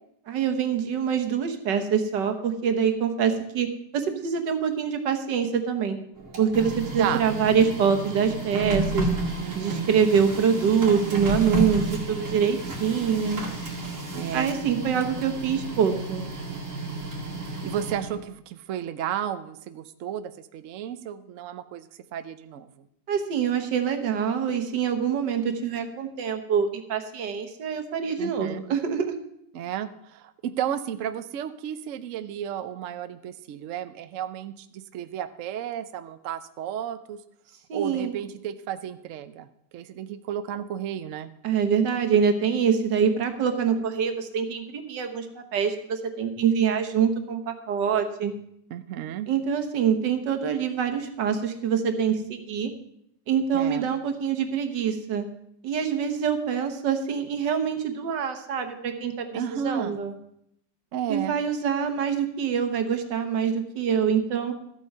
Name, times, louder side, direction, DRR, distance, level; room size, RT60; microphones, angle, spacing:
voice 1, 0.3-3.7 3.9-6.0 6.4-9.1 9.6-11.8 12.1-13.4 14.3-16.2 23.1-29.1 37.7-38.2 41.4-45.3 45.5-48.3 49.3-52.7 53.3-55.3 55.6-60.1 61.1-64.5, right 7 dB, 80° right, 6 dB, 1.8 m, -25 dB
Printer, 6.2-18.2, right 2 dB, 45° right, 2.4 m, -32 dB
voice 2, 9.3-10.0 14.1-14.5 17.5-22.9 28.2-28.6 29.5-37.2 37.7-39.5 39.7-41.3 48.7-49.3 53.5-53.9 59.3-60.0 60.9-61.3, right 9 dB, 60° right, 11 dB, 0.8 m, -33 dB
13.5 x 8.4 x 5.4 m, 0.76 s
omnidirectional pair, 1.9 m